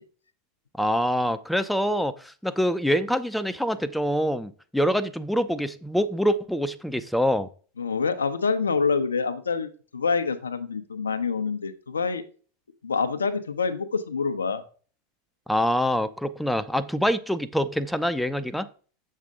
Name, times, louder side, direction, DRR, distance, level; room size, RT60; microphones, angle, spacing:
voice 1, 0.8-7.5 15.5-18.7, equal, ahead, 12 dB, 0.6 m, -25 dB
voice 2, 7.8-12.2 12.8-14.6, left 5 dB, 75° left, 10 dB, 0.8 m, -26 dB
8.1 x 6.6 x 3.7 m, 0.41 s
figure-of-eight pair, 80°, 0 cm